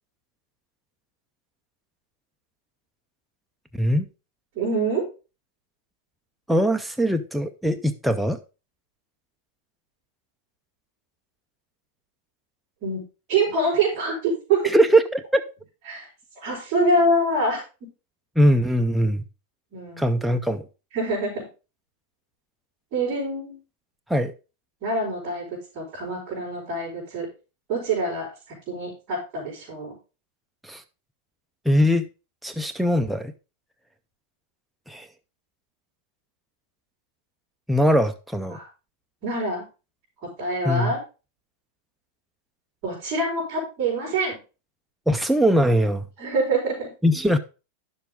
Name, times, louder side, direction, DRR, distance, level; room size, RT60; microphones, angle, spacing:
voice 1, 3.7-4.1 6.5-8.4 14.6-15.4 18.4-19.2 20.0-20.6 24.1-24.3 30.6-30.8 31.7-32.1 32.4-33.3 34.9-35.1 37.7-38.6 40.6-40.9 45.1-46.1 47.0-47.4, equal, ahead, 5 dB, 0.5 m, -21 dB
voice 2, 4.5-5.1 12.8-14.7 15.9-16.1 16.4-17.6 19.7-20.1 20.9-21.4 22.9-23.6 24.8-25.5 25.7-27.3 27.7-29.9 38.4-38.7 39.2-39.7 40.2-41.0 42.8-44.4 46.2-46.9, right 2 dB, 30° right, -8 dB, 5.0 m, -25 dB
10.5 x 7.0 x 3.6 m, 0.30 s
supercardioid pair, 170°, 0 cm